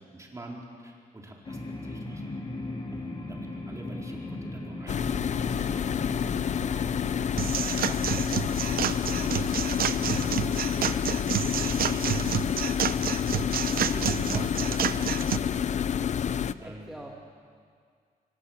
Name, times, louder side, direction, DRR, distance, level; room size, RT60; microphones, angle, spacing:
voice 1, 0.1-2.2 2.9-8.4 9.0-15.7 16.6-16.9, right 1 dB, 20° right, -1 dB, 4.3 m, -46 dB
sound 1, 1.4-13.7, left 2 dB, 35° left, 3.3 m, -39 dB
sound 2, 4.9-16.5, left 8 dB, 50° left, 0.6 m, -28 dB
sound 3, 7.4-15.4, right 10 dB, 70° right, 0.7 m, -30 dB
voice 2, 16.1-17.1, right 1 dB, ahead, -2 dB, 2.1 m, -47 dB
26.5 x 24.0 x 7.4 m, 2.1 s
wide cardioid pair, 140°, 16 cm